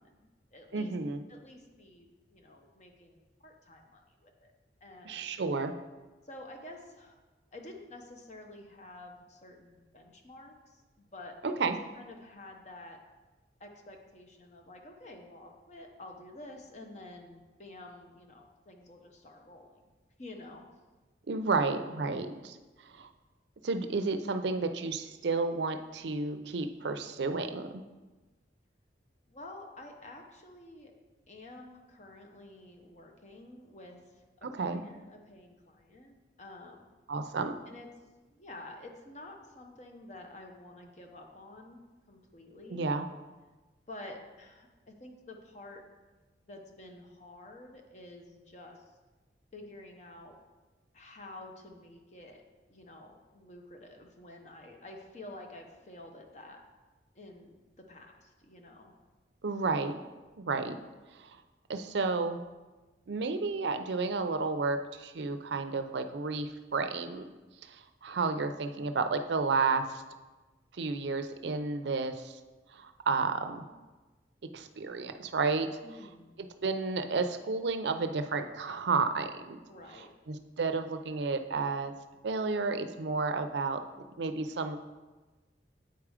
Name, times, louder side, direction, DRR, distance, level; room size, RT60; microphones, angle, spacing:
voice 1, 0.0-0.9 1.3-4.5 4.8-5.4 6.2-7.2 7.5-13.0 13.6-19.8 20.2-20.6 29.3-30.9 31.3-36.8 37.7-37.9 38.3-41.8 42.1-42.9 43.9-45.8 46.4-48.9 49.5-50.3 50.9-52.4 52.7-56.6 57.1-57.6 57.9-58.9 75.8-76.3 79.7-80.1, left 2 dB, 40° left, 3 dB, 0.8 m, -50 dB
voice 2, 0.7-1.2 5.0-5.7 11.4-11.8 21.3-22.6 22.8-23.1 23.6-27.8 34.4-34.8 37.1-37.5 42.7-43.0 59.4-59.9 60.4-60.8 61.1-61.4 61.7-62.4 63.1-67.2 67.6-70.0 70.7-72.4 72.7-73.6 74.5-75.7 76.6-79.6 80.3-81.9 82.2-83.8 84.2-84.8, right 4 dB, 75° right, 8 dB, 0.5 m, -31 dB
8.0 x 4.8 x 4.9 m, 1.2 s
head